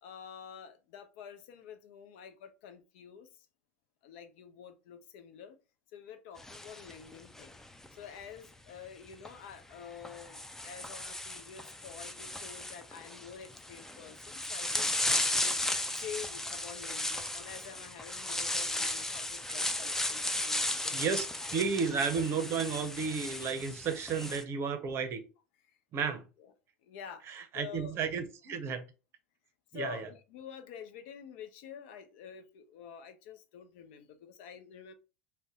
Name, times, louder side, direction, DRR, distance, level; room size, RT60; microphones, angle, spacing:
voice 1, 0.0-3.3 4.0-5.6 5.9-7.5 7.9-15.6 16.0-21.0 21.4-21.5 23.2-23.3 24.2-24.3 26.4-26.5 26.8-28.0 29.7-34.9, left 7 dB, 65° left, 0.5 m, -48 dB
sound 1, 6.4-7.9 9.1-9.3 10.0-24.4, left 1 dB, 5° left, 0.3 m, -35 dB
voice 2, 20.9-21.2 21.5-25.3 25.9-26.2 27.3-28.8 29.7-30.1, right 5 dB, 40° right, 0.6 m, -32 dB
2.6 x 2.2 x 3.5 m
hypercardioid pair, 85°, 6 cm